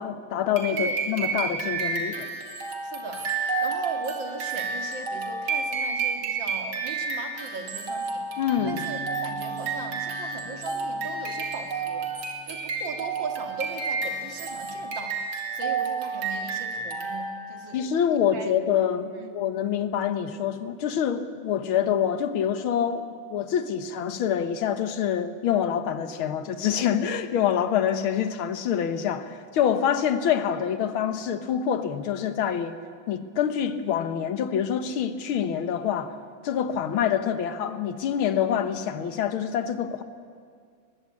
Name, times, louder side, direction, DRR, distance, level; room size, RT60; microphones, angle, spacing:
voice 1, 0.0-2.3 8.4-8.8 17.7-32.8 33.1-36.1 36.4-40.0, left 8 dB, 85° left, 10 dB, 1.9 m, -26 dB
sound 1, 0.6-17.6, right 4 dB, 90° right, 3.0 m, -30 dB
voice 2, 0.7-1.0 2.8-3.3 3.6-8.3 8.6-12.1 12.5-15.2 15.5-17.8 18.1-18.5 19.2-19.3, right 4 dB, 65° right, 4 dB, 2.6 m, -38 dB
Bass guitar, 8.6-14.8, left 2 dB, 65° left, 2.6 m, -46 dB
21.5 x 20.0 x 8.6 m, 2.1 s
omnidirectional pair, 2.2 m